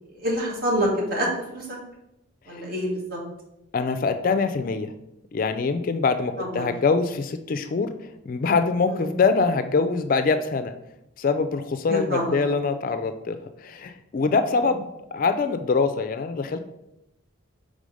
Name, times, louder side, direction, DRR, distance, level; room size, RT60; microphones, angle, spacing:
voice 1, 0.2-1.3 1.5-1.8 2.5-3.2 6.4-6.6 8.9-9.1 11.9-12.5, equal, 45° right, -2 dB, 1.6 m, -27 dB
voice 2, 3.7-4.9 5.3-7.9 8.3-10.7 11.2-16.6, left 4 dB, 40° left, 10 dB, 0.3 m, -24 dB
4.9 x 3.7 x 5.3 m, 0.86 s
head